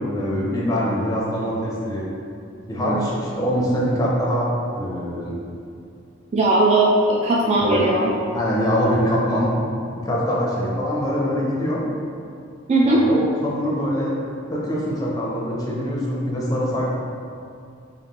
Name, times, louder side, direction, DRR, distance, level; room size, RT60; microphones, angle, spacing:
voice 1, 0.1-2.0 2.7-4.5 4.8-5.3 7.6-7.8 8.3-9.5 9.9-11.8 12.8-14.1 14.5-17.0, equal, 20° left, -5 dB, 0.6 m, -23 dB
voice 2, 2.8-3.1 6.3-8.1 12.7-13.0, right 2 dB, 35° right, -3 dB, 0.3 m, -18 dB
5.1 x 2.5 x 2.9 m, 2.5 s
head